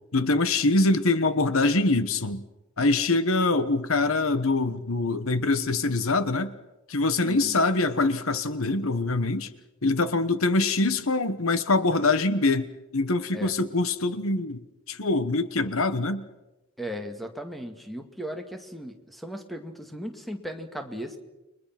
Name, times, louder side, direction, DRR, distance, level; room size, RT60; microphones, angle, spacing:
voice 1, 0.1-2.4 2.8-6.5 6.9-9.5 9.8-14.6 14.9-16.2, left 3 dB, 70° left, 12 dB, 1.3 m, -24 dB
voice 2, 7.2-7.6 13.3-13.5 16.8-21.2, equal, ahead, 5 dB, 2.1 m, -37 dB
30.0 x 22.5 x 6.0 m, 0.99 s
head